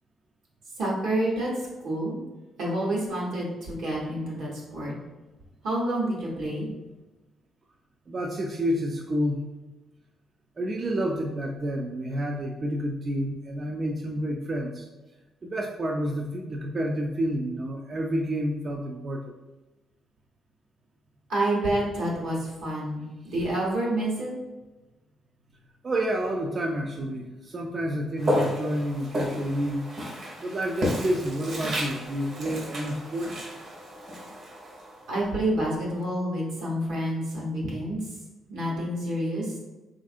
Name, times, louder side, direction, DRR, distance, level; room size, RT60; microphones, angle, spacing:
voice 1, 0.8-1.5 1.8-2.2 2.6-4.9 5.6-6.7 21.3-24.3 35.1-38.0 38.5-39.4, right 1 dB, 85° right, -4 dB, 1.1 m, -28 dB
voice 2, 8.1-9.4 10.6-14.9 15.4-19.2 25.8-29.8 30.4-33.5, equal, 40° right, 1 dB, 0.3 m, -29 dB
Walk footsteps, 28.2-35.3, equal, 60° right, 0.9 m, -32 dB
3.4 x 2.5 x 2.4 m, 1.1 s
cardioid pair, 90°, 0 cm